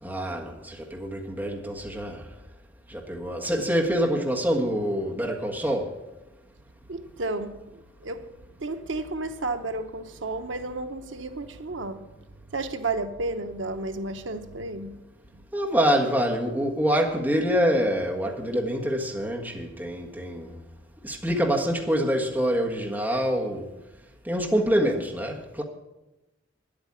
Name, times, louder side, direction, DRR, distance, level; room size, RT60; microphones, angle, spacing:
voice 1, 0.0-2.3 2.9-6.0 15.5-20.6 21.0-23.7 24.2-25.6, equal, 10° right, 1.6 m, -26 dB
voice 2, 6.9-8.3 8.6-12.1 12.5-15.0, right 2 dB, 80° right, 0.9 m, -32 dB
10.0 x 8.7 x 9.9 m
head